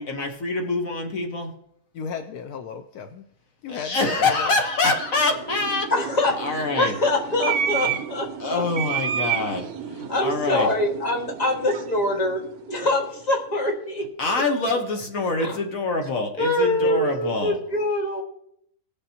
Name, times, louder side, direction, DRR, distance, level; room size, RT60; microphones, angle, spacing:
voice 1, 0.0-1.5 3.7-5.9 6.4-6.9 8.4-10.7 14.2-17.6, left 3 dB, 60° left, 1.5 m, -25 dB
voice 2, 1.9-3.2 3.6-4.5, left 6 dB, 75° left, 1.2 m, -35 dB
sound 1, 4.7-13.2, right 8 dB, 75° right, 1.2 m, -31 dB
voice 3, 5.9-8.6 10.1-12.4 12.7-14.0 15.4-15.5 16.4-18.2, left 1 dB, 25° left, 1.8 m, -24 dB
18.5 x 6.9 x 2.8 m
omnidirectional pair, 1.6 m